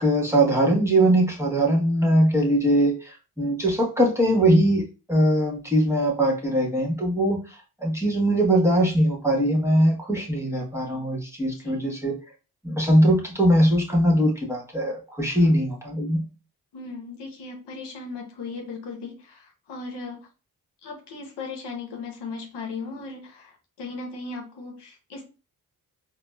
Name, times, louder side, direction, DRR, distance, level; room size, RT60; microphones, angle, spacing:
voice 1, 0.0-7.5 7.8-12.1 12.6-16.2, right 1 dB, 5° right, -1 dB, 1.1 m, -21 dB
voice 2, 16.7-20.3 20.8-25.2, left 4 dB, 85° left, 2 dB, 0.8 m, -37 dB
4.0 x 2.1 x 2.2 m, 0.33 s
supercardioid pair, 40°, 40 cm